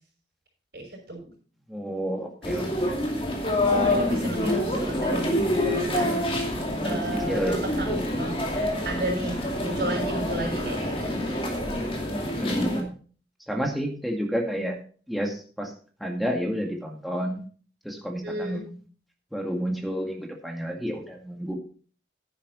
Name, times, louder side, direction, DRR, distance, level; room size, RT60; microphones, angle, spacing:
voice 1, 0.7-1.3 3.8-5.4 5.7-6.2 6.8-8.4 8.8-11.2 18.2-18.6, right 1 dB, 60° right, 1 dB, 6.0 m, -33 dB
voice 2, 1.7-2.7 7.3-7.5 12.3-12.9 13.5-14.8 15.1-15.7 16.0-17.4 17.8-18.8 19.3-21.5, equal, ahead, 0 dB, 2.1 m, -30 dB
sound 1, 2.4-12.8, left 1 dB, 30° left, 2.5 m, -26 dB
10.5 x 9.9 x 4.1 m, 0.41 s
head